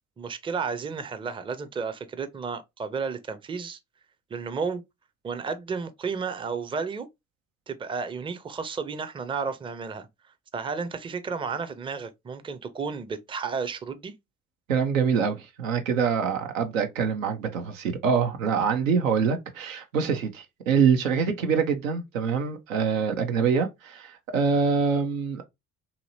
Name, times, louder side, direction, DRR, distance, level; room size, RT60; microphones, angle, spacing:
voice 1, 0.2-3.8 4.3-4.8 5.2-7.1 7.7-10.1 10.5-14.1, right 5 dB, 15° right, 0.4 m, -32 dB
voice 2, 14.7-25.4, right 6 dB, 85° right, 0.6 m, -25 dB
2.8 x 2.7 x 2.6 m
figure-of-eight pair, 50°, 39 cm